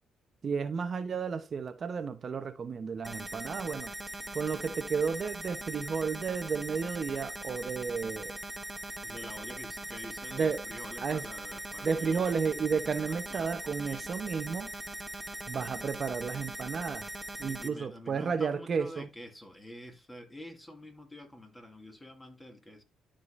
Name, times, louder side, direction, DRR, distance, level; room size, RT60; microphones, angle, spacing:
voice 1, 0.4-3.9 4.3-8.4 10.3-10.6 11.0-11.3 11.8-14.7 15.5-17.1 17.4-19.1, right 5 dB, 45° right, 0.8 m, -32 dB
sound 1, 3.0-17.7, right 1 dB, 10° right, 1.4 m, -41 dB
voice 2, 9.0-12.4 13.1-13.5 13.8-14.1 17.4-22.8, equal, 10° left, 2.3 m, -47 dB
12.0 x 5.0 x 2.6 m
cardioid pair, 90°, 0 cm